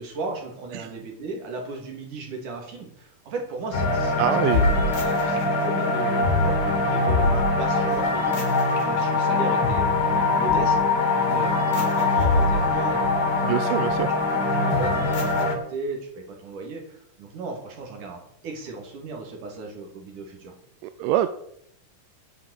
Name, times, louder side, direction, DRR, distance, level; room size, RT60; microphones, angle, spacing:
voice 1, 0.0-4.2 4.5-4.6 5.0-10.8 11.3-13.4 14.0-14.4 14.7-20.5, right 3 dB, 60° right, 2 dB, 4.2 m, -36 dB
sound 1, 3.7-15.6, left 3 dB, 40° left, 2.6 m, -22 dB
voice 2, 4.2-4.7 13.4-14.1 20.8-21.3, right 12 dB, 80° right, 10 dB, 2.1 m, -24 dB
9.9 x 8.5 x 8.1 m, 0.73 s
omnidirectional pair, 4.1 m